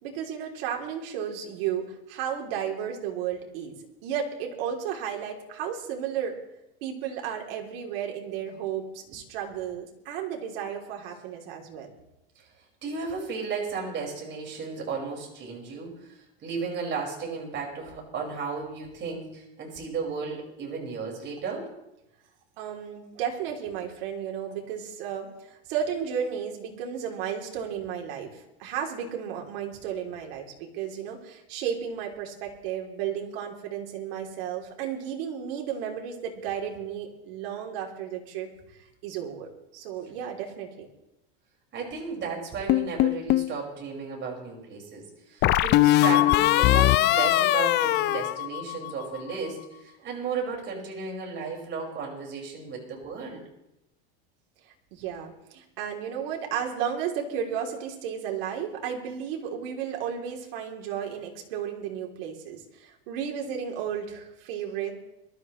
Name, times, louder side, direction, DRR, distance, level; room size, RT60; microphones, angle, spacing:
voice 1, 0.0-3.7 4.0-6.4 6.8-11.9 22.6-40.9 54.9-65.0, right 8 dB, 75° right, 1 dB, 3.3 m, -33 dB
voice 2, 12.8-21.7 41.7-53.4, right 5 dB, 40° right, -1 dB, 5.5 m, -34 dB
sound 1, 42.7-43.5 45.4-49.1, left 16 dB, 35° left, 0.4 m, -21 dB
22.5 x 13.5 x 3.2 m, 0.86 s
supercardioid pair, 125°, 30 cm